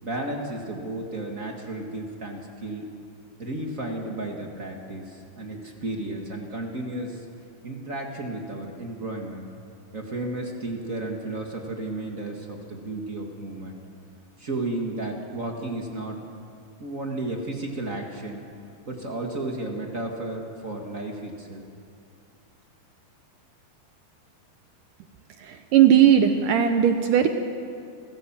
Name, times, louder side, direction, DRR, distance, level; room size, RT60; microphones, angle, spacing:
voice 1, 0.0-2.8 3.4-7.2 7.6-9.5 9.9-13.8 14.4-16.2 16.8-18.4 18.9-21.7, right 2 dB, 40° right, 1 dB, 1.1 m, -33 dB
voice 2, 25.4-27.3, right 9 dB, 70° right, 7 dB, 2.1 m, -18 dB
28.5 x 15.5 x 7.4 m, 2.4 s
omnidirectional pair, 4.4 m